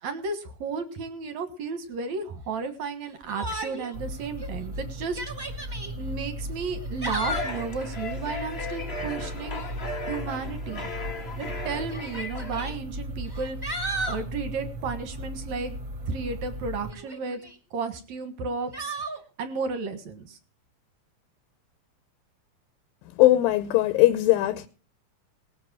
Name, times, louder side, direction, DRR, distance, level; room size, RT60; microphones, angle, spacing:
voice 1, 0.0-5.2 6.0-9.6 10.1-10.9 11.4-15.8 16.1-17.4 17.7-19.0 19.4-20.4, right 4 dB, 60° right, 2.3 m, -33 dB
Yell, 3.3-4.0 4.4-4.5 5.0-5.9 6.8-7.6 9.3-9.8 10.9-11.0 11.9-12.7 13.3-14.2 16.9-17.6 18.7-19.2, right 1 dB, 10° right, 1.4 m, -34 dB
sound 1, 3.9-16.9, equal, 40° right, 2.0 m, -37 dB
sound 2, 7.2-12.8, left 2 dB, 50° left, 0.7 m, -37 dB
voice 2, 23.2-24.7, left 16 dB, 75° left, 2.4 m, -20 dB
19.5 x 7.7 x 6.2 m
omnidirectional pair, 4.5 m